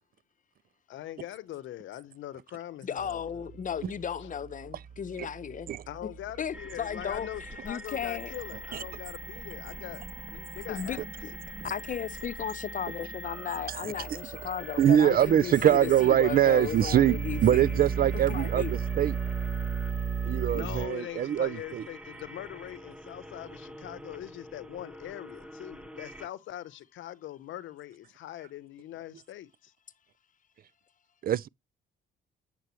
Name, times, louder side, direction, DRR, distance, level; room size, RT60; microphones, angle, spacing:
voice 1, 0.9-3.5 4.2-4.3 5.9-10.0 10.3-11.0 15.0-16.0 20.5-29.7, left 13 dB, 75° left, 0.8 m, -42 dB
voice 2, 2.8-5.7 6.4-8.3 10.7-11.3 11.6-17.8 18.3-18.7, left 8 dB, 40° left, 0.7 m, -35 dB
sound 1, 3.0-20.9, right 5 dB, 30° right, 1.1 m, -37 dB
sound 2, 6.5-26.3, right 1 dB, 5° right, 1.5 m, -46 dB
voice 3, 14.8-19.1 20.3-21.8 31.2-31.5, right 10 dB, 50° right, 0.4 m, -23 dB
8.3 x 7.6 x 3.0 m
cardioid pair, 90°, 20 cm